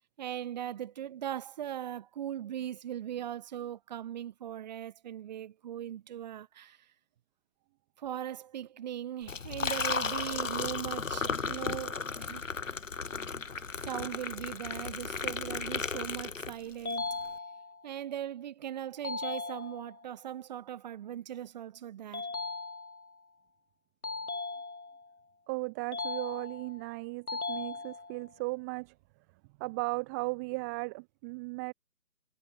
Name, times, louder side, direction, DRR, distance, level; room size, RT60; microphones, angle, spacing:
voice 1, 0.2-6.8 8.0-12.4 13.8-17.2 17.8-22.3, right 11 dB, 30° right, 4.0 m, -39 dB
Liquid, 9.2-16.9, left 5 dB, 55° left, 6.5 m, -35 dB
sound 1, 16.9-17.9 19.0-20.0 22.1-23.2 24.0-25.1 25.9-26.8 27.3-28.3, left 3 dB, 70° left, 3.3 m, -38 dB
voice 2, 25.5-28.9 29.6-31.7, right 27 dB, 10° right, 1.5 m, -36 dB
figure-of-eight pair, 145°, 45 cm